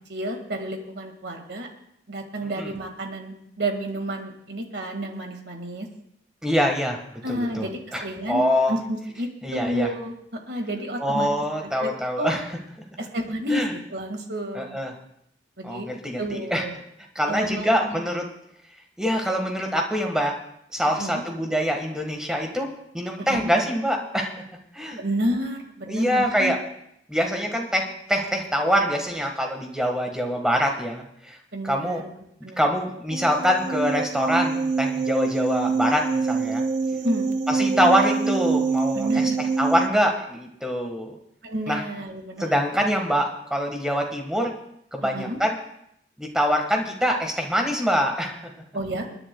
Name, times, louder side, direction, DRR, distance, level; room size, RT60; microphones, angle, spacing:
voice 1, 0.1-1.7 2.1-5.9 7.2-10.1 10.5-11.3 11.8-11.9 12.2-12.3 13.0-14.8 15.6-15.9 16.2-16.7 17.2-18.0 20.9-21.2 23.2-23.5 25.0-26.5 31.5-32.1 32.4-32.6 37.0-37.3 38.9-39.4 41.4-42.5 45.0-45.4 48.7-49.1, right 1 dB, 65° right, 4 dB, 1.8 m, -30 dB
voice 2, 6.4-8.7 9.4-9.9 11.0-12.4 13.5-13.7 14.5-14.9 15.6-16.6 17.1-18.3 19.0-20.4 20.7-22.7 22.9-24.3 24.7-25.0 25.9-26.6 27.1-31.4 31.6-32.0 32.6-36.6 37.5-41.1 41.7-41.8 42.4-44.5 44.9-45.5 46.2-48.5, equal, 5° right, 2 dB, 1.4 m, -24 dB
sound 1, 33.1-39.9, right 4 dB, 40° right, 0.5 m, -25 dB
28.5 x 9.9 x 2.2 m, 0.74 s
head